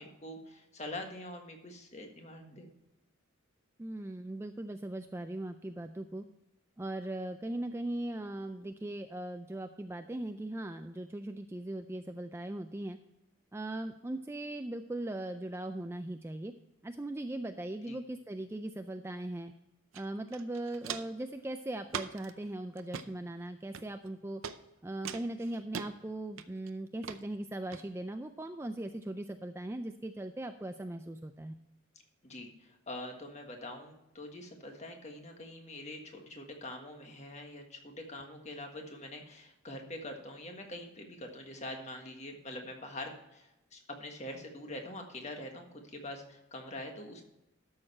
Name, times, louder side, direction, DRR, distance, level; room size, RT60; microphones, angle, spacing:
voice 1, 0.0-2.7 17.9-18.0 32.2-47.2, left 1 dB, 30° left, 3 dB, 1.6 m, -44 dB
voice 2, 3.8-6.3 6.8-13.0 13.5-16.5 16.8-19.5 19.9-24.4 24.8-31.5, right 1 dB, 10° right, 7 dB, 0.3 m, -39 dB
Walk footsteps, 19.9-20.0 20.3-21.2 21.9-22.3 22.8-23.1 23.7-24.1 24.4-24.6 25.0-25.9 26.4-26.7 27.0-27.2 27.7-27.8, right 7 dB, 70° right, 0.6 m, -40 dB
12.5 x 6.6 x 4.3 m, 0.92 s
head